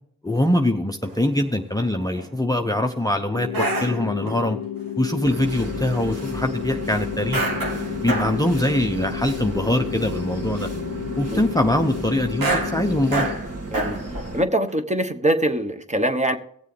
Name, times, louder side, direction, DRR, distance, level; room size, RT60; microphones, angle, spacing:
voice 1, 0.2-4.6 5.0-7.4 8.0-10.7 11.2-13.3, left 1 dB, 10° left, 5 dB, 0.7 m, -23 dB
sound 1, 1.0-1.2 1.7-2.3 2.6-3.1 3.5-4.4 5.4-6.1 6.5-6.6 7.3-8.4 8.8-8.9 9.3-9.4 9.8-10.1 10.4-10.6 12.3-14.3 14.7-14.8, right 2 dB, 65° right, 1.8 m, -28 dB
sound 2, 3.3-13.4, left 10 dB, 60° left, 0.5 m, -32 dB
sound 3, 5.2-14.4, right 2 dB, 40° right, 1.9 m, -33 dB
voice 2, 14.3-16.4, right 1 dB, 20° right, 7 dB, 1.1 m, -23 dB
17.0 x 7.3 x 3.4 m, 0.66 s
cardioid pair, 50°, 37 cm